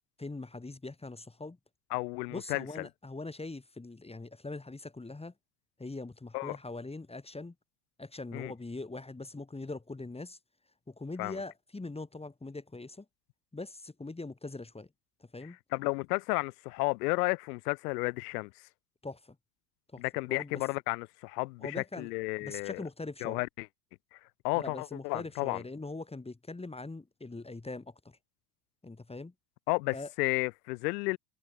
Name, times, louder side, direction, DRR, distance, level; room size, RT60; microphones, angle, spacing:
voice 1, 0.2-1.6 2.3-5.3 5.8-7.5 8.0-10.4 10.9-13.0 13.5-14.9 15.3-15.6 19.0-19.3 19.9-20.0 20.3-20.6 21.6-22.1 22.4-23.4 24.5-28.2 28.8-29.3 29.9-30.1, left 2 dB, 10° left, 3.2 m, -42 dB
voice 2, 1.9-2.9 6.3-6.6 8.3-8.5 11.2-11.4 15.7-18.5 20.0-22.8 23.2-23.7 24.1-24.2 24.4-25.6 29.7-31.2, left 26 dB, 75° left, 0.7 m, -32 dB
hypercardioid pair, 80°, 48 cm